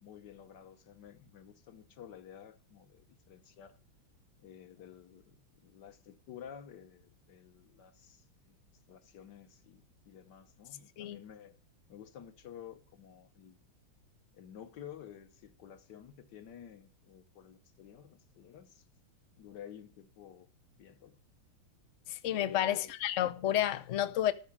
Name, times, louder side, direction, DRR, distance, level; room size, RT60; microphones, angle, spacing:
voice 1, 0.0-3.8 4.4-8.6 8.9-11.6 11.9-13.6 14.3-18.8 19.4-20.5 20.8-21.2 22.3-22.9, left 9 dB, 60° left, 1.5 m, -52 dB
voice 2, 22.1-24.3, left 12 dB, 75° left, 0.7 m, -31 dB
13.5 x 5.0 x 7.3 m
omnidirectional pair, 2.3 m